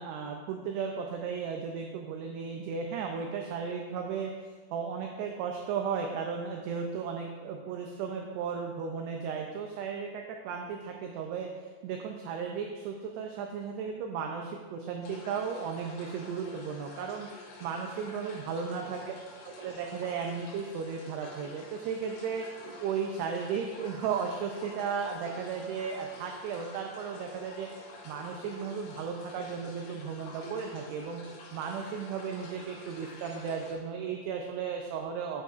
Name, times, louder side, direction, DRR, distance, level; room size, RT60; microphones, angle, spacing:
voice 1, 0.0-4.3 4.7-11.5 11.8-17.3 17.6-19.1 19.4-27.7 28.1-31.2 31.5-35.4, right 6 dB, 85° right, 2 dB, 2.4 m, -35 dB
sound 1, 15.0-33.7, left 1 dB, 70° left, 3.4 m, -48 dB
9.0 x 8.2 x 2.4 m, 1.5 s
omnidirectional pair, 5.3 m